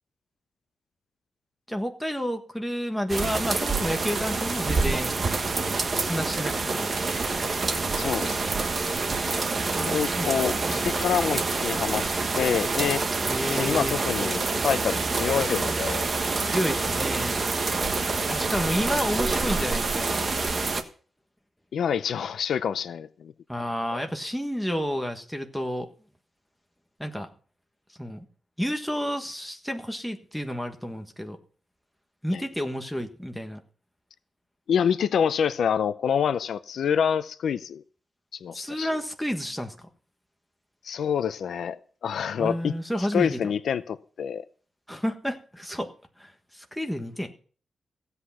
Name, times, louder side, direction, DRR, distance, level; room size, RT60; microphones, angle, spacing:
voice 1, 1.7-5.1 6.0-6.9 9.7-10.3 10.7-10.8 13.2-14.0 16.4-17.3 18.3-20.3 23.5-25.9 27.0-27.3 28.0-28.2 28.6-31.4 32.2-33.6 38.5-39.9 42.4-43.5 44.9-45.9 46.2-47.3, equal, ahead, 1.5 m, -30 dB
sound 1, 3.1-20.8, right 3 dB, 35° right, 1.3 m, -27 dB
voice 2, 8.0-8.4 8.9-9.0 9.8-12.0 12.4-13.0 13.5-16.1 21.7-23.3 32.3-32.4 34.7-37.8 38.3-38.9 40.8-42.7 43.0-44.4, left 8 dB, 75° left, 0.6 m, -27 dB
16.0 x 8.2 x 5.7 m
wide cardioid pair, 150°, 0 cm